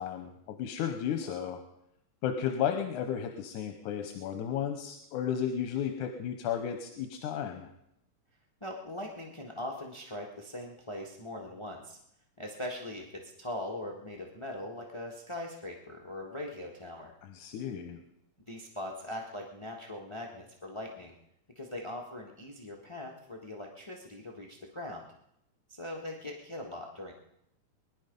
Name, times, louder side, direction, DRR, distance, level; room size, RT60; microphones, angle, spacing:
voice 1, 0.0-1.6 2.2-7.7 17.2-18.0, left 8 dB, 80° left, 5 dB, 2.4 m, -33 dB
voice 2, 8.6-12.0 12.4-17.1 18.5-21.1 21.5-25.0 25.7-27.1, left 1 dB, 30° left, 0 dB, 0.5 m, -41 dB
21.5 x 11.0 x 5.4 m, 0.78 s
omnidirectional pair, 3.5 m